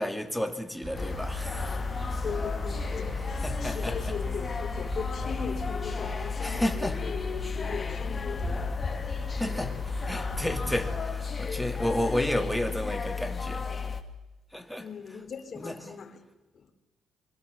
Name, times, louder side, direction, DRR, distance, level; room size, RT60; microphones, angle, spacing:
voice 1, 0.0-1.8 3.4-4.1 6.4-7.0 9.4-13.7 14.5-14.9 15.6-15.8, left 1 dB, 5° left, 2.7 m, -31 dB
sound 1, 0.8-11.0, right 1 dB, 25° right, 7.5 m, -38 dB
sound 2, 1.0-14.0, left 5 dB, 30° left, 2.3 m, -33 dB
voice 2, 2.2-8.8 14.8-16.2 16.5-16.7, left 6 dB, 45° left, 4.0 m, -39 dB
24.5 x 24.0 x 7.1 m
cardioid pair, 90°, 0 cm